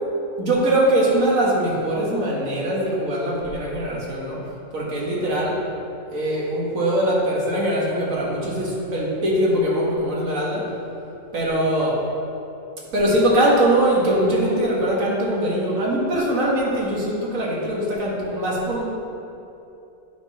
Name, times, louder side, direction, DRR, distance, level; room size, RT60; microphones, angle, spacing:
voice 1, 0.4-4.4 4.7-5.6 6.1-10.7 11.3-12.0 12.9-18.9, right 1 dB, 65° right, -4 dB, 2.0 m, -22 dB
8.8 x 5.7 x 4.2 m, 2.8 s
omnidirectional pair, 1.5 m